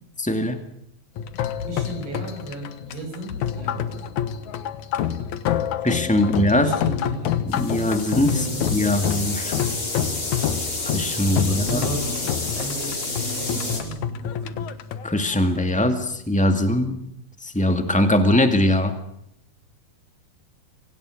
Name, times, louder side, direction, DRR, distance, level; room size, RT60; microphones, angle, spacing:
voice 1, 0.2-0.6 5.8-6.7 7.5-8.5 8.7-9.5 10.9-11.8 15.0-17.0 17.4-18.9, left 1 dB, 10° left, 6 dB, 0.4 m, -21 dB
sound 1, 1.2-16.0, left 9 dB, 60° left, 2.3 m, -28 dB
voice 2, 1.7-4.0 6.1-7.4 8.3-9.0 11.3-14.7, equal, 90° right, 2 dB, 9.7 m, -34 dB
sound 2, 7.5-13.8, left 2 dB, 35° left, 6.5 m, -30 dB
27.5 x 24.5 x 6.5 m, 0.74 s
omnidirectional pair, 4.4 m